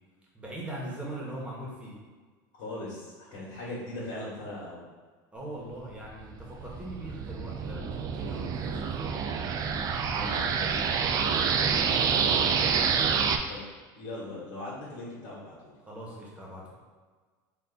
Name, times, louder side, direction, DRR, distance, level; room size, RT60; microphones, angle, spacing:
voice 1, 0.3-2.0 5.3-9.2 11.3-12.6 12.9-13.2 15.9-16.7, right 1 dB, 10° right, -4 dB, 1.3 m, -41 dB
voice 2, 2.5-4.9 10.1-10.9 13.5-13.6 13.9-15.7, left 1 dB, 65° left, -7 dB, 1.5 m, -39 dB
sound 1, 6.0-13.4, right 6 dB, 35° right, 0.4 m, -27 dB
4.1 x 2.6 x 4.0 m, 1.4 s
supercardioid pair, 115°, 10 cm